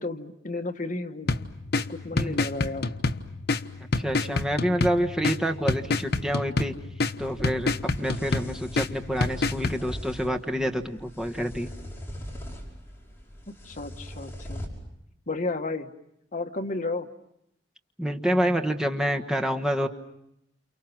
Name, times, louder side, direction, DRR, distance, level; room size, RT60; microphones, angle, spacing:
voice 1, 0.0-1.3 1.8-2.9 13.6-14.6 15.3-15.9 16.3-17.1, left 2 dB, 45° left, 5 dB, 1.5 m, -32 dB
sound 1, 1.3-9.8, left 3 dB, 60° left, 1.2 m, -29 dB
voice 2, 4.0-6.7 7.2-7.7 8.0-11.7 18.0-19.9, equal, 5° right, 4 dB, 1.4 m, -27 dB
sound 2, 7.2-14.7, equal, 15° left, 5.9 m, -41 dB
29.5 x 29.0 x 6.0 m, 0.80 s
head